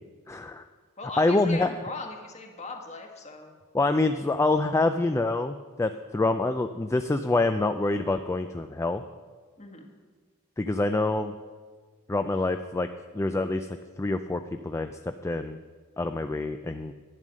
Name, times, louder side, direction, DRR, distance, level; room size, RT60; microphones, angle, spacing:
voice 1, 0.3-0.6 1.2-1.7 3.7-9.0 10.6-11.3 12.1-12.9 13.1-15.6 16.0-16.9, left 2 dB, 15° left, 8 dB, 0.3 m, -26 dB
voice 2, 1.0-3.5 9.6-9.9, left 3 dB, 30° left, 2 dB, 1.6 m, -39 dB
11.0 x 9.3 x 6.3 m, 1.5 s
head